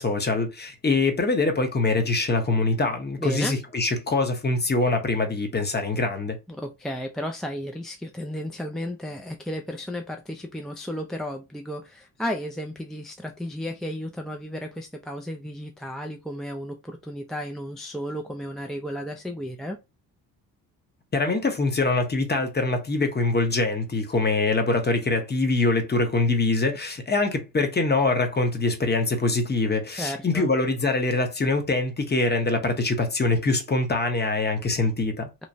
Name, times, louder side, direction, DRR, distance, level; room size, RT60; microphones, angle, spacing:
voice 1, 0.0-6.4 21.1-35.3, left 3 dB, 25° left, 0.9 m, -24 dB
voice 2, 3.2-3.6 6.5-19.8 30.0-30.5, equal, ahead, 0.3 m, -33 dB
3.0 x 2.1 x 2.6 m
supercardioid pair, 65°, 38 cm